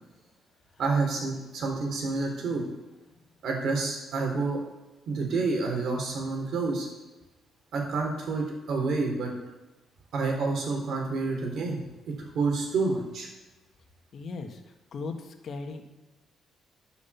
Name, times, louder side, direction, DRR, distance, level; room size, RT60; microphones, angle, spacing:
voice 1, 0.8-2.6 3.4-4.6 5.1-6.9 7.7-9.3 10.1-11.8 12.1-13.3, right 3 dB, 70° right, 1 dB, 3.5 m, -28 dB
voice 2, 14.1-14.6 14.9-15.8, left 4 dB, 55° left, 5 dB, 1.6 m, -37 dB
11.5 x 6.2 x 7.1 m, 1.1 s
cardioid pair, 90°, 0 cm